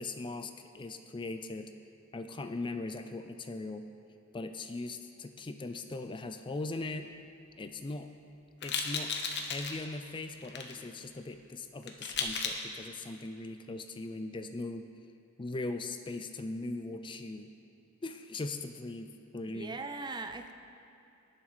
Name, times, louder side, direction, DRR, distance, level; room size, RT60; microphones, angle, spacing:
voice 1, 0.0-1.7 2.1-3.9 4.3-7.1 7.6-8.1 8.6-9.1 9.4-14.9 15.4-17.5 18.0-19.8, left 2 dB, 25° left, 8 dB, 0.4 m, -39 dB
sound 1, 8.6-9.8 10.4-10.7 11.8-12.6, left 5 dB, 55° left, 1.1 m, -35 dB
voice 2, 19.5-20.5, right 3 dB, 20° right, 7 dB, 0.6 m, -40 dB
19.0 x 7.1 x 5.1 m, 2.8 s
head